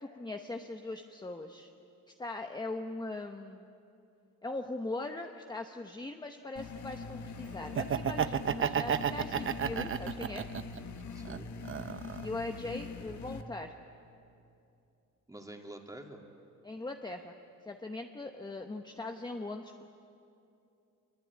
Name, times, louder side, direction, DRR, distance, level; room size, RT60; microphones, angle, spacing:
voice 1, 0.0-1.7 2.2-3.7 4.4-10.5 12.2-13.7 16.6-17.3 17.6-19.9, left 2 dB, 15° left, 5 dB, 1.0 m, -40 dB
sound 1, 6.6-13.4, left 4 dB, 65° left, 1.8 m, -43 dB
Laughter, 7.6-10.8 11.2-12.4, right 8 dB, 40° right, 0.8 m, -32 dB
voice 2, 11.1-11.5 15.3-16.2, right 1 dB, 10° right, 2 dB, 2.7 m, -47 dB
26.5 x 22.5 x 9.6 m, 2.7 s
cardioid pair, 130°, 31 cm